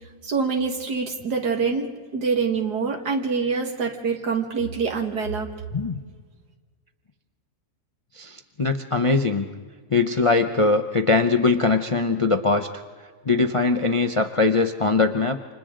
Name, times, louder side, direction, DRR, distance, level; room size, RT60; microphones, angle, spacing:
voice 1, 0.2-5.5, right 5 dB, 80° right, 2 dB, 2.3 m, -25 dB
voice 2, 8.2-9.5 9.9-12.7 13.2-15.4, left 3 dB, 40° left, 6 dB, 0.4 m, -21 dB
29.0 x 26.0 x 3.8 m, 1.5 s
omnidirectional pair, 1.7 m